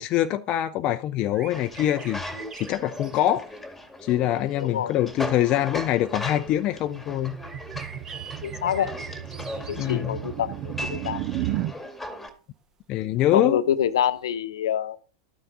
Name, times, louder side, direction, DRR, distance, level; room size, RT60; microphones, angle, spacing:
voice 1, 0.0-2.2 2.6-3.5 4.0-7.3 9.8-10.2 12.9-13.6, left 12 dB, 35° left, 0.5 m, -24 dB
sound 1, 1.3-3.6 4.5-4.6 5.5-5.6 7.4-9.9 11.4-11.6 14.2-14.3, right 5 dB, 20° right, 1.1 m, -43 dB
sound 2, 1.5-12.3, left 1 dB, 5° left, 2.0 m, -38 dB
voice 2, 4.6-4.9 8.4-8.9 9.7-11.2 13.3-15.0, left 9 dB, 65° left, 0.9 m, -26 dB
sound 3, 6.5-11.7, right 12 dB, 40° right, 0.9 m, -34 dB
12.0 x 9.1 x 3.9 m
figure-of-eight pair, 90°, 3 cm